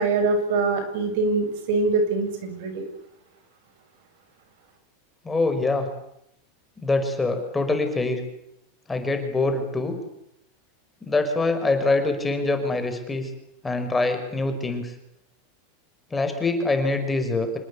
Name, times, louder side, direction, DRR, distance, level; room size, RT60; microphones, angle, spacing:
voice 1, 0.0-2.8, right 3 dB, 65° right, 8 dB, 7.5 m, -23 dB
voice 2, 5.2-5.9 6.8-8.2 8.9-10.0 11.0-13.3 13.6-14.9 16.1-17.6, left 3 dB, 10° left, 6 dB, 5.4 m, -24 dB
26.5 x 20.5 x 8.6 m, 0.80 s
supercardioid pair, 125°, 0 cm